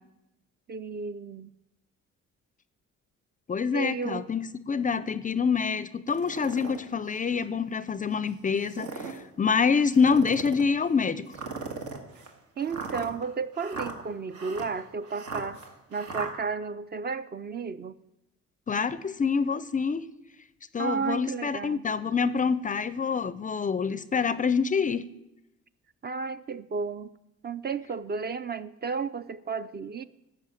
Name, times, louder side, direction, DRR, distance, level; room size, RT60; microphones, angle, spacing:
voice 1, 0.7-1.5 3.6-4.3 12.6-15.6 15.9-18.0 20.8-21.8 26.0-27.1 27.4-30.0, right 5 dB, 35° right, 13 dB, 0.4 m, -33 dB
voice 2, 3.5-11.3 18.7-20.1 20.7-25.1, left 5 dB, 25° left, 15 dB, 0.4 m, -26 dB
sound 1, 6.1-6.8 7.4-7.5 8.5-9.2 9.9-10.7 11.3-16.3, right 4 dB, 80° right, 1.6 m, -38 dB
12.5 x 5.3 x 7.6 m, 0.92 s
cardioid pair, 90°, 30 cm